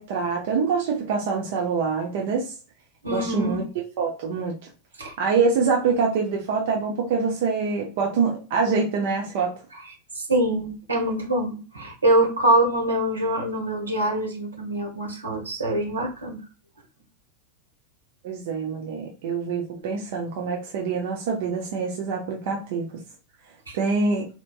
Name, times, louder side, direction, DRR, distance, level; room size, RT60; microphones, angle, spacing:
voice 1, 0.0-2.5 3.1-3.6 4.0-4.5 5.2-9.5 18.2-23.0 23.7-24.3, right 5 dB, 50° right, 0 dB, 0.7 m, -25 dB
voice 2, 3.0-3.6 5.0-5.1 5.8-6.0 10.1-16.4 23.7-23.8, right 1 dB, 75° right, -1 dB, 1.3 m, -24 dB
4.2 x 3.0 x 2.4 m, 0.35 s
figure-of-eight pair, 90°, 0 cm